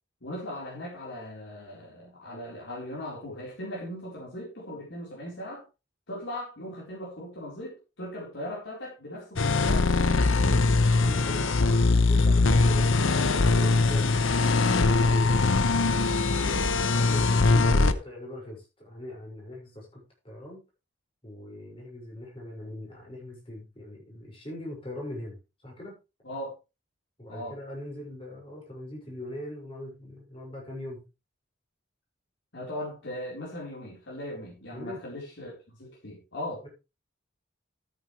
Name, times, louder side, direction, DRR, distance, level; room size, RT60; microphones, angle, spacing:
voice 1, 0.2-5.6 6.1-10.6 26.2-26.5 27.3-27.6 32.5-36.7, left 1 dB, 70° left, -4 dB, 4.4 m, -39 dB
sound 1, 9.4-17.9, left 3 dB, 90° left, 0.8 m, -22 dB
voice 2, 10.9-14.1 14.7-15.5 16.4-20.6 21.2-25.4 25.6-25.9 27.2-31.0 34.7-35.0 36.6-36.7, left 1 dB, 30° left, -2 dB, 6.0 m, -41 dB
13.5 x 9.1 x 3.3 m, 0.28 s
head